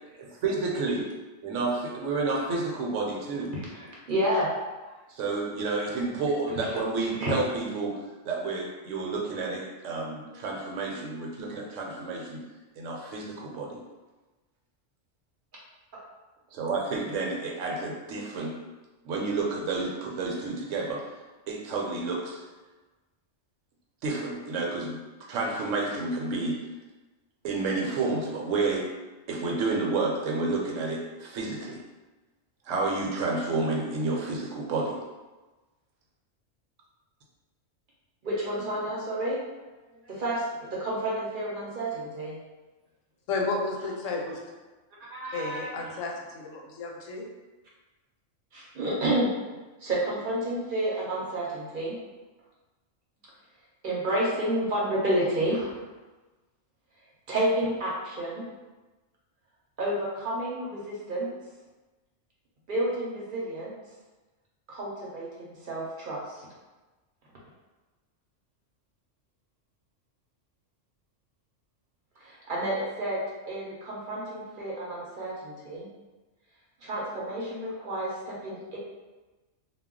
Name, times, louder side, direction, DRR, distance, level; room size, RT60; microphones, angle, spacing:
voice 1, 0.4-1.0 1.4-3.5 5.1-12.4 12.8-13.8 16.5-18.6 19.0-21.2 21.5-22.4 24.0-25.0 25.3-26.6 27.4-28.9 29.3-31.8 32.6-35.0, right 3 dB, 75° right, -1 dB, 0.9 m, -30 dB
voice 2, 3.7-4.5 6.6-6.8 7.2-7.4 38.2-39.4 40.0-42.4 45.1-46.0 48.5-49.3 49.8-51.9 53.8-55.9 57.3-58.4 59.8-61.3 62.7-63.7 64.7-66.5 72.2-73.2 73.5-75.9 76.8-78.8, right 1 dB, 50° right, -5 dB, 0.7 m, -30 dB
voice 3, 43.3-44.4 45.3-47.2, left 3 dB, 85° left, 0 dB, 1.0 m, -32 dB
2.3 x 2.1 x 3.6 m, 1.2 s
omnidirectional pair, 1.3 m